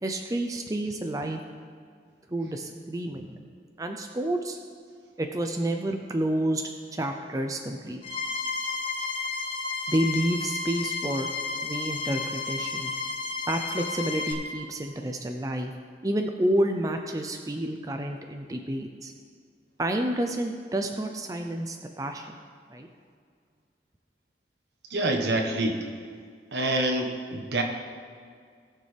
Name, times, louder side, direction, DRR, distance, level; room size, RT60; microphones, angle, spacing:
voice 1, 0.0-1.4 2.3-3.5 3.8-4.6 5.2-6.6 6.9-8.0 9.9-11.3 11.6-12.9 13.5-15.7 16.0-19.1 19.8-22.3 22.7-22.9, right 1 dB, 20° right, 4 dB, 0.5 m, -29 dB
sound 1, 8.0-14.3, left 4 dB, 30° left, 1.0 m, -32 dB
voice 2, 24.9-25.8 26.5-27.6, right 2 dB, 75° right, 3 dB, 1.3 m, -26 dB
19.0 x 6.6 x 3.4 m, 2.1 s
head